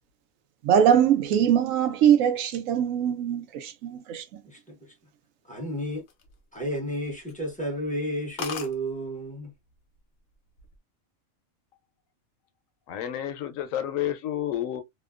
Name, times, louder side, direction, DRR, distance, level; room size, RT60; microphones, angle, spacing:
voice 1, 0.6-4.2, right 9 dB, 85° right, 1.0 m, -22 dB
voice 2, 4.5-4.9 5.5-6.0 6.5-9.5, equal, 5° left, 0.9 m, -32 dB
sound 1, 5.9-6.9 7.3-7.5 7.9-8.0 8.1-8.2 8.4-8.7 9.7-10.0 10.3-10.7, left 5 dB, 65° left, 0.9 m, -37 dB
voice 3, 12.9-14.8, left 11 dB, 90° left, 1.0 m, -30 dB
2.8 x 2.2 x 2.3 m
omnidirectional pair, 1.3 m